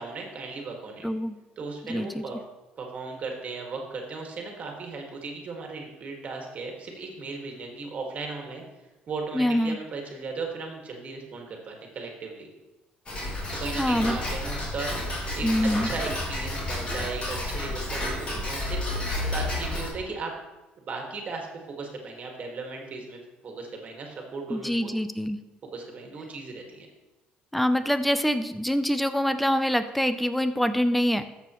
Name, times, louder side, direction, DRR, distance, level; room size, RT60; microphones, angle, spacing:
voice 1, 0.0-1.1 1.6-2.4 2.8-8.6 9.1-12.5 13.5-15.5 15.8-20.3 20.8-24.9 25.7-26.9, right 4 dB, 45° right, 1 dB, 1.9 m, -37 dB
voice 2, 1.0-1.4 1.8-2.2 9.3-9.8 13.8-14.2 15.4-15.9 24.5-25.4 27.5-31.3, equal, ahead, 11 dB, 0.5 m, -25 dB
Tick-tock, 13.1-19.9, left 1 dB, 35° left, 3.2 m, -31 dB
13.0 x 6.8 x 3.1 m, 1.1 s
cardioid pair, 115°, 3 cm